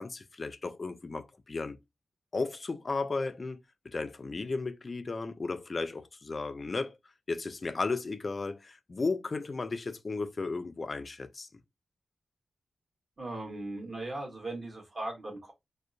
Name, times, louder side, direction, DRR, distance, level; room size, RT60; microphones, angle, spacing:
voice 1, 0.0-1.8 2.3-7.0 7.3-11.5, left 3 dB, 40° left, 0.3 m, -34 dB
voice 2, 13.2-15.5, right 2 dB, 40° right, 1.2 m, -38 dB
2.6 x 2.0 x 2.5 m
wide cardioid pair, 105°, 0 cm